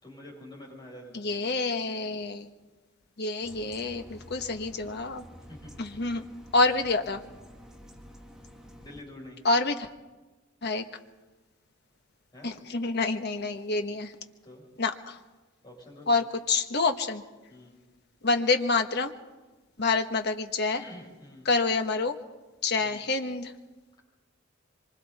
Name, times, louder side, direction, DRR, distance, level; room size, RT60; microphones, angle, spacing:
voice 1, 0.0-1.4 5.5-5.7 8.8-9.4 12.3-12.5 14.4-14.6 15.6-16.1 17.5-17.8 20.8-21.5 22.8-23.0, left 1 dB, 20° left, -3 dB, 7.6 m, -47 dB
voice 2, 1.1-2.5 3.2-5.2 5.8-6.2 6.5-7.2 9.4-9.9 10.6-10.8 12.4-14.1 14.8-15.2 16.1-17.2 18.2-19.1 19.8-20.8 21.4-22.1 22.6-23.5, left 3 dB, 55° left, 6 dB, 1.3 m, -27 dB
sound 1, 3.4-9.0, equal, 5° right, 1.7 m, -49 dB
25.5 x 24.0 x 4.2 m, 1.2 s
head